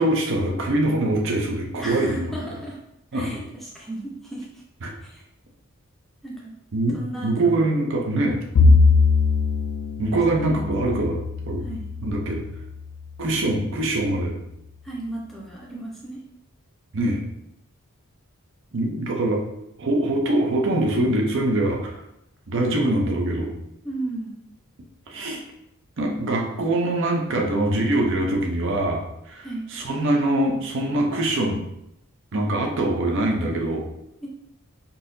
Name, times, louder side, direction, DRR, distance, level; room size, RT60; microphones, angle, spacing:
voice 1, 0.0-2.4 3.1-3.4 4.8-4.9 6.7-7.0 7.2-8.4 10.0-11.2 11.5-11.6 12.0-12.4 13.2-14.4 16.9-17.2 18.7-19.4 19.8-22.0 22.5-23.5 25.1-25.4 26.0-29.0 29.3-31.6 32.3-33.8, right 1 dB, 60° right, 1 dB, 0.6 m, -23 dB
voice 2, 1.8-2.8 3.1-4.5 5.0-5.2 6.2-6.5 6.9-7.7 8.6-8.9 10.3-10.9 11.6-11.9 14.8-16.2 23.8-24.4 29.4-29.7 34.2-34.3, right 1 dB, ahead, -4 dB, 0.5 m, -35 dB
Bowed string instrument, 8.6-12.9, left 4 dB, 80° left, 0.3 m, -21 dB
3.9 x 2.8 x 2.6 m, 0.81 s
head